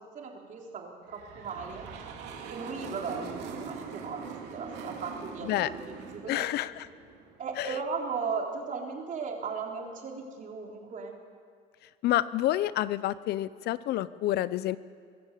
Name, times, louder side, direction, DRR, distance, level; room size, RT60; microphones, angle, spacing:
voice 1, 0.1-1.8 2.5-6.4 7.4-11.1, right 5 dB, 50° right, 0 dB, 4.0 m, -37 dB
sound 1, 1.1-7.5, right 5 dB, 90° right, 3.0 m, -42 dB
voice 2, 6.3-6.9 7.6-7.7 12.0-14.8, left 14 dB, 75° left, 17 dB, 0.7 m, -28 dB
23.0 x 14.0 x 8.4 m, 2.3 s
cardioid pair, 110°, 17 cm